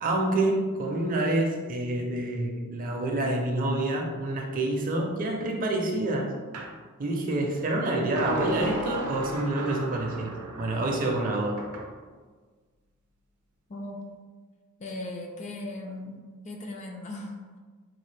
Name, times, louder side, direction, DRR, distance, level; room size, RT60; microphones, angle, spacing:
voice 1, 0.0-6.3 7.0-11.6, right 2 dB, 40° right, 1 dB, 0.5 m, -27 dB
sound 1, 6.5-6.7 8.2-11.9, right 1 dB, 85° right, 0.5 m, -35 dB
voice 2, 13.7-14.1 14.8-17.6, left 2 dB, 30° left, 2 dB, 0.4 m, -38 dB
3.9 x 2.4 x 3.2 m, 1.5 s
head